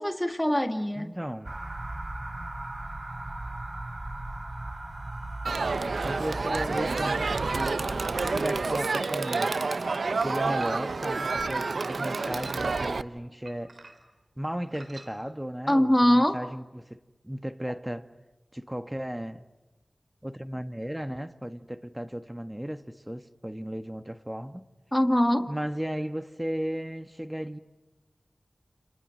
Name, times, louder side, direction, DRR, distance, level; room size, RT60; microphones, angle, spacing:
voice 1, 0.0-1.1 6.5-7.1 7.8-8.0 9.5-9.7 15.7-16.4 24.9-25.5, left 1 dB, 10° left, 1.9 m, -24 dB
voice 2, 0.9-1.5 5.8-9.7 10.2-13.8 14.4-18.1 18.5-19.4 20.2-24.6 25.5-27.6, equal, 10° right, 1.4 m, -35 dB
sound 1, 1.4-8.6, right 2 dB, 45° right, 5.3 m, -37 dB
Crowd, 5.4-13.0, right 4 dB, 85° right, 0.9 m, -29 dB
sound 2, 10.6-11.2 11.9-12.8 13.4-14.2 14.7-15.1, right 3 dB, 70° right, 4.1 m, -49 dB
30.0 x 30.0 x 6.4 m
cardioid pair, 40°, 0 cm